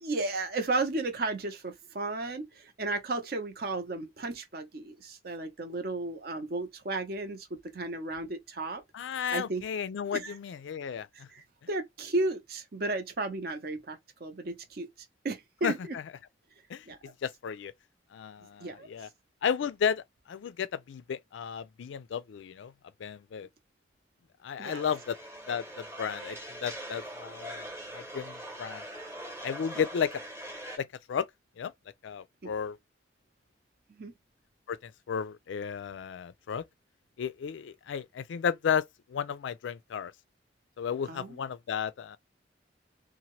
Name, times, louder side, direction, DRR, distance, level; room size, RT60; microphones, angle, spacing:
voice 1, 0.0-8.8 9.3-9.6 10.1-10.3 11.3-14.9 15.2-16.0 16.9-17.0 18.6-18.9 24.6-24.8 32.4-32.5 33.9-34.1 41.1-41.4, right 2 dB, 50° right, 0.6 m, -34 dB
voice 2, 8.9-11.3 15.6-16.0 16.7-17.7 18.1-19.1 19.4-22.7 23.0-23.5 24.4-25.2 25.5-28.8 29.4-30.2 30.8-31.3 31.6-31.7 32.0-32.8 34.7-36.6 37.2-40.1 40.8-42.2, left 7 dB, 80° left, 0.3 m, -33 dB
sound 1, 24.6-30.8, equal, 15° right, 0.9 m, -42 dB
2.7 x 2.1 x 3.0 m
head